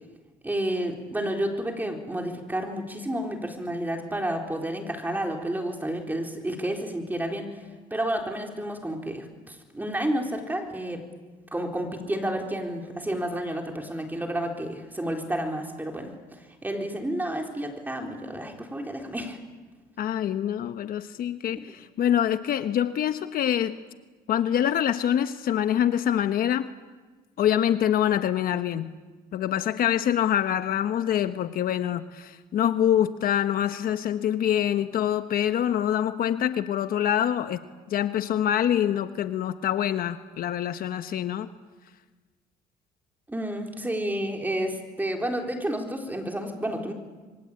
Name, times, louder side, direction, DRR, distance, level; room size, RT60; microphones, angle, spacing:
voice 1, 0.4-7.6 7.9-11.0 11.5-16.1 16.6-19.4 21.5-21.6 43.3-46.9, right 1 dB, 10° right, 2 dB, 4.3 m, -30 dB
voice 2, 20.0-23.8 24.3-26.7 27.4-28.9 29.3-37.6 37.9-41.5, left 10 dB, 60° left, 10 dB, 1.2 m, -25 dB
26.5 x 23.5 x 8.7 m, 1.3 s
cardioid pair, 110°, 17 cm